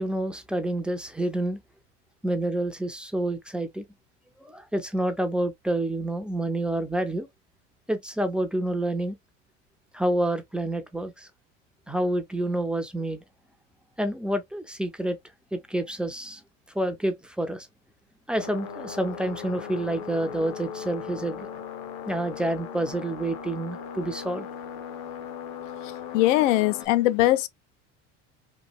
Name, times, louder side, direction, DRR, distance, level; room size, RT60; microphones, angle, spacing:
voice 1, 0.0-1.6 2.2-3.8 4.4-7.3 7.9-9.2 9.9-11.3 11.9-13.2 14.0-15.2 15.5-16.4 16.7-17.7 18.3-21.5 22.1-24.5, right 1 dB, 5° right, 0.3 m, -28 dB
sound 1, 18.4-26.9, left 7 dB, 60° left, 0.9 m, -38 dB
voice 2, 26.1-27.5, left 16 dB, 75° left, 0.5 m, -21 dB
3.1 x 2.6 x 2.3 m
hypercardioid pair, 95°, 37 cm